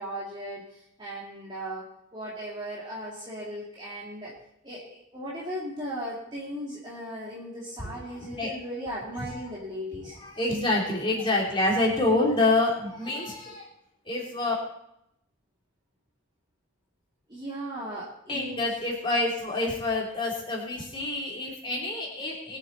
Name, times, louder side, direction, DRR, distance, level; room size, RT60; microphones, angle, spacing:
voice 1, 0.0-1.9 2.1-4.3 4.6-10.2 17.3-18.6, equal, 25° right, -7 dB, 2.5 m, -37 dB
voice 2, 7.8-8.5 9.4-9.5 10.2-13.7 14.1-14.5 18.3-22.6, left 2 dB, 25° left, -3 dB, 3.5 m, -27 dB
22.0 x 7.6 x 4.2 m, 0.79 s
head